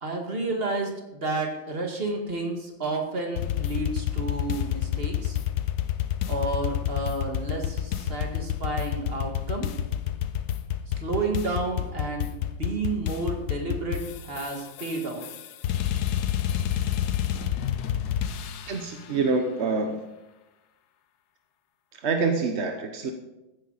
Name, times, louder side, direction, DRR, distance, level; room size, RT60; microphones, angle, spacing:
voice 1, 0.0-5.4 6.3-9.7 11.0-15.2, right 3 dB, 30° right, 2 dB, 2.0 m, -31 dB
sound 1, 3.4-18.9, left 11 dB, 65° left, 1.0 m, -29 dB
voice 2, 18.7-20.0 22.0-23.1, right 4 dB, 50° right, 5 dB, 0.8 m, -26 dB
15.0 x 10.0 x 4.1 m, 1.0 s
omnidirectional pair, 2.2 m